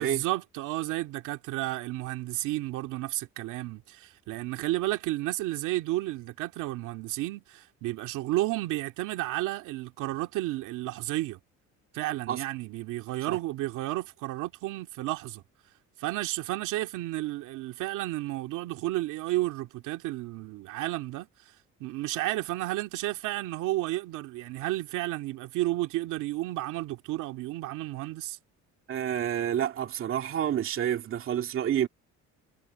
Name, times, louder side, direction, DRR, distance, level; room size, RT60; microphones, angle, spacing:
voice 1, 0.0-11.4 11.9-15.4 16.0-21.5 21.8-28.4, right 17 dB, 85° right, 2.3 m, -32 dB
voice 2, 28.9-31.9, right 10 dB, 45° right, 2.3 m, -29 dB
cardioid pair, 155°, 30 cm